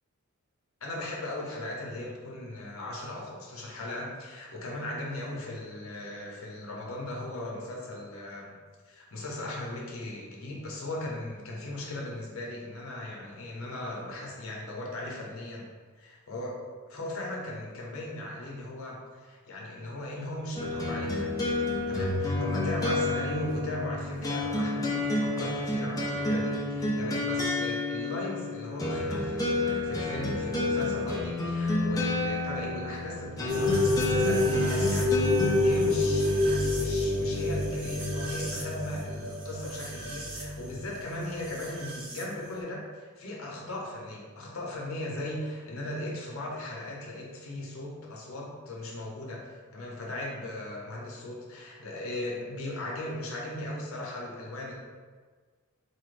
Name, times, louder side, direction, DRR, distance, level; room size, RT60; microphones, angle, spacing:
voice 1, 0.8-8.5 8.8-15.6 16.0-16.6 16.9-21.4 21.9-35.2 35.6-54.8, left 1 dB, 70° left, -3 dB, 0.8 m, -38 dB
sound 1, 20.6-35.8, left 2 dB, 15° left, 0.5 m, -30 dB
sound 2, 33.5-42.2, left 2 dB, 75° right, 0.8 m, -28 dB
4.3 x 2.5 x 3.2 m, 1.5 s
head